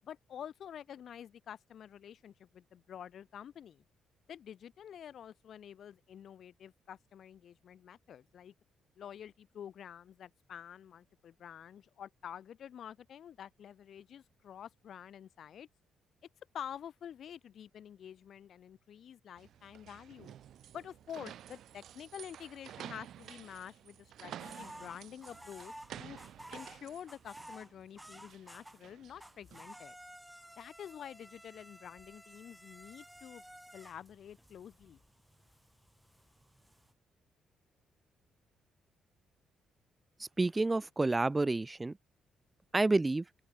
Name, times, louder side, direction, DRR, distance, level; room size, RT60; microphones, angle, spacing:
voice 1, 0.0-3.8 4.3-8.5 9.0-15.7 16.5-20.3 20.7-26.2 26.5-30.0 30.6-33.4 33.7-35.0, left 9 dB, 60° left, 7.2 m, -48 dB
sound 1, 19.4-29.8, right 11 dB, 70° right, 6.2 m, -51 dB
sound 2, 24.4-28.9 29.2-36.9, equal, 5° right, 2.2 m, -54 dB
voice 2, 40.2-42.0 42.7-43.2, right 2 dB, 20° right, 0.6 m, -29 dB
open air
cardioid pair, 90°, 0 cm